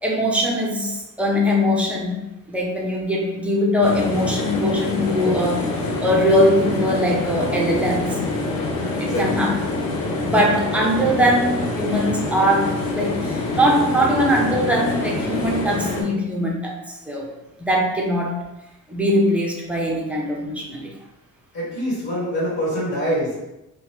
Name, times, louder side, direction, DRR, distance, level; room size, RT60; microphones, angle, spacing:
voice 1, 0.0-5.7 6.0-8.2 9.0-9.5 10.2-17.3 17.6-18.4 18.9-20.9, equal, 5° right, -2 dB, 0.7 m, -21 dB
sound 1, 3.8-16.0, left 2 dB, 75° left, 0.7 m, -25 dB
voice 2, 21.5-23.4, equal, 55° left, -8 dB, 1.4 m, -24 dB
2.8 x 2.3 x 3.0 m, 0.95 s
cardioid pair, 90°, 35 cm